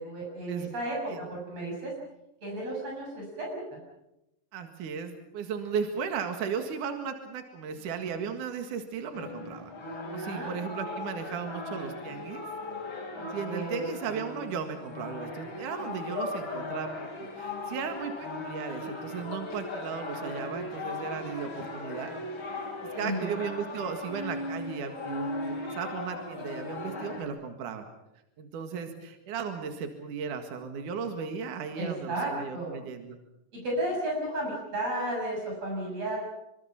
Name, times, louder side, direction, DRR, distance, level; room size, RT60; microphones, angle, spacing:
voice 1, 0.0-1.9 2.4-3.8 10.2-10.9 13.1-13.9 22.9-23.3 31.8-32.7 33.5-36.2, right 1 dB, 50° right, -2 dB, 8.2 m, -33 dB
voice 2, 4.5-9.7 10.1-12.5 13.3-22.1 22.5-22.7 23.0-27.9 28.4-33.2, right 6 dB, 70° right, 6 dB, 3.3 m, -36 dB
sound 1, 9.1-27.2, left 2 dB, 35° left, 4.9 m, -38 dB
26.0 x 25.0 x 5.9 m, 0.88 s
omnidirectional pair, 3.9 m